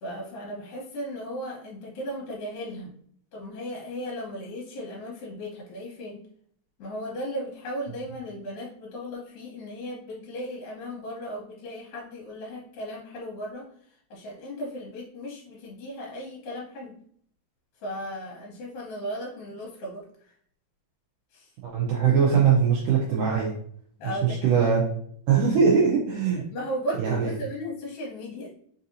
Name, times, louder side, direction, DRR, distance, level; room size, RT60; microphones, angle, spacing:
voice 1, 0.0-2.9 3.3-6.2 6.8-13.7 14.1-17.0 17.8-20.0 21.3-21.5 24.0-24.7 26.3-28.5, equal, 75° left, -3 dB, 2.5 m, -36 dB
voice 2, 21.6-23.5 24.0-24.8 25.3-26.4 27.0-27.3, right 6 dB, 85° right, -4 dB, 1.9 m, -21 dB
5.6 x 2.7 x 2.5 m, 0.63 s
omnidirectional pair, 4.4 m